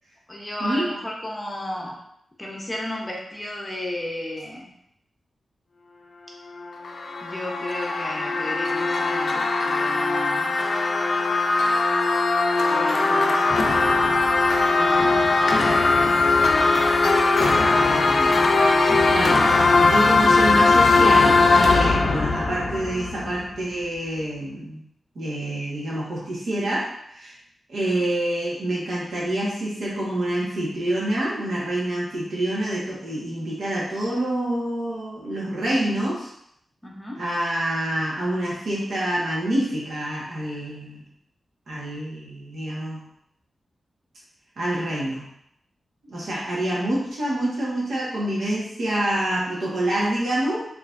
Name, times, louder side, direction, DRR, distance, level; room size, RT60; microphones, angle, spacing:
voice 1, 0.3-2.0 2.4-4.7 7.2-10.6 12.7-13.9 14.7-16.4 27.9-28.1 36.8-37.2, left 1 dB, 15° left, -2 dB, 0.7 m, -34 dB
sound 1, 6.6-23.6, left 3 dB, 50° left, 0.4 m, -20 dB
voice 2, 17.6-18.7 19.1-24.8 25.1-27.3 27.7-36.3 37.2-41.1 41.7-43.0 44.6-45.3 46.0-50.7, right 1 dB, 75° right, -5 dB, 1.4 m, -27 dB
4.8 x 3.1 x 2.6 m, 0.73 s
wide cardioid pair, 155°, 0 cm